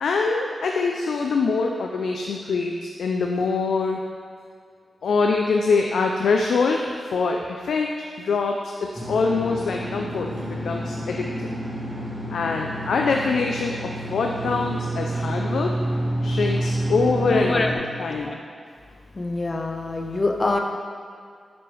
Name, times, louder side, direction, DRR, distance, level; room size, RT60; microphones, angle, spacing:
voice 1, 0.0-4.0 5.0-6.9 7.1-7.9 8.2-10.3 10.6-11.3 12.3-15.8 16.2-17.6 18.0-18.4, left 4 dB, 90° left, 1 dB, 0.3 m, -24 dB
sound 1, 9.0-17.8, right 1 dB, 25° right, 1.4 m, -29 dB
voice 2, 17.3-17.8 18.3-18.4 19.1-20.6, left 2 dB, 40° left, 3 dB, 0.6 m, -25 dB
6.1 x 6.0 x 3.2 m, 2.1 s
cardioid pair, 70°, 0 cm